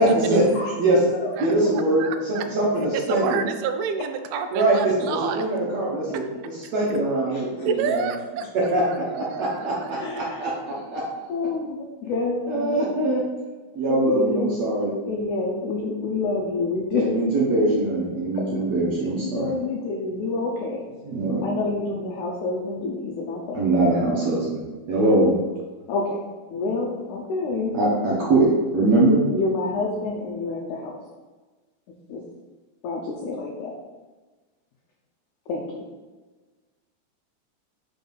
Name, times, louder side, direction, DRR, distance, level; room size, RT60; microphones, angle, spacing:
voice 1, 0.0-0.4 0.8-1.0 1.4-3.4 4.5-6.3 6.7-8.1 8.7-11.0 12.5-13.2 13.8-14.9 16.9-19.5 21.0-21.4 23.5-24.6 24.9-25.3 27.7-29.2, right 2 dB, 70° right, -5 dB, 1.7 m, -22 dB
voice 2, 0.5-1.4 4.3-4.4 7.3-7.4 9.9-10.5 11.3-12.8 13.9-14.6 15.0-17.1 19.2-20.8 21.4-23.6 25.9-26.2 26.5-27.7 29.3-31.0 32.1-32.2 32.8-33.7 35.5-35.9, left 3 dB, 85° left, -1 dB, 1.7 m, -28 dB
voice 3, 2.0-2.4 3.1-5.5 7.7-8.7 9.1-9.9, right 6 dB, 85° right, 7 dB, 2.3 m, -29 dB
5.6 x 3.9 x 5.4 m, 1.3 s
omnidirectional pair, 4.4 m